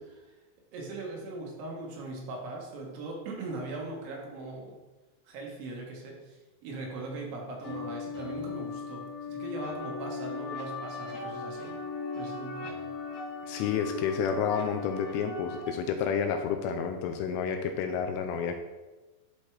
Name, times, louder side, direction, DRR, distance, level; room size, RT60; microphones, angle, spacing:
voice 1, 0.7-4.8 5.3-11.7 12.1-12.8, right 2 dB, 75° right, -1 dB, 3.3 m, -40 dB
sound 1, 7.6-15.6, left 4 dB, 50° left, 2.5 m, -38 dB
voice 2, 13.5-18.6, left 7 dB, 85° left, 5 dB, 3.0 m, -30 dB
12.0 x 4.4 x 3.3 m, 1.2 s
omnidirectional pair, 5.9 m